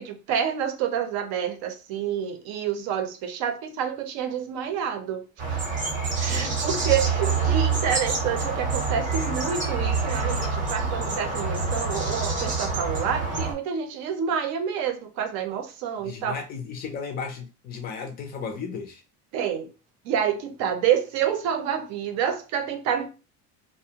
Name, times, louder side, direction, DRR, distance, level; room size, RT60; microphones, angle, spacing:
voice 1, 0.0-5.6 6.2-16.4 19.3-19.7 20.0-23.1, right 8 dB, 60° right, 0.6 m, -28 dB
sound 1, 5.4-13.5, right 4 dB, 25° right, 0.7 m, -26 dB
voice 2, 6.3-6.6 16.0-19.0, left 5 dB, 30° left, 0.4 m, -35 dB
2.4 x 2.0 x 2.8 m
cardioid pair, 155°, 31 cm